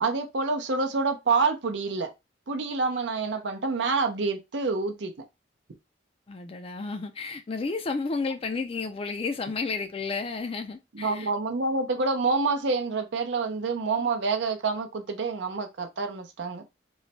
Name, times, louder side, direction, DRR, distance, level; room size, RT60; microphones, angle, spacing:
voice 1, 0.0-2.1 2.5-5.1 10.9-16.6, right 4 dB, 75° right, 0.6 m, -27 dB
voice 2, 6.3-11.3, left 4 dB, 30° left, 0.4 m, -32 dB
3.1 x 2.1 x 4.0 m
head